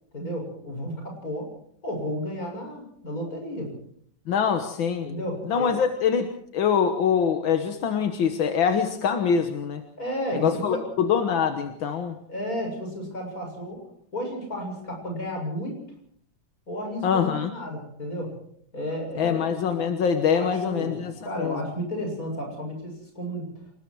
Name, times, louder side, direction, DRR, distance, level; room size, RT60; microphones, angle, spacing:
voice 1, 0.1-1.5 1.8-3.7 5.0-5.8 10.0-10.9 12.3-13.8 14.1-15.8 16.7-18.4 18.7-19.7 20.2-23.5, equal, 45° left, 2 dB, 7.9 m, -32 dB
voice 2, 4.3-5.1 5.5-6.3 6.5-9.8 10.3-12.2 17.0-17.5 19.2-21.1 21.4-21.6, left 7 dB, 85° left, 6 dB, 2.1 m, -24 dB
28.0 x 20.0 x 4.7 m, 0.66 s
omnidirectional pair, 2.1 m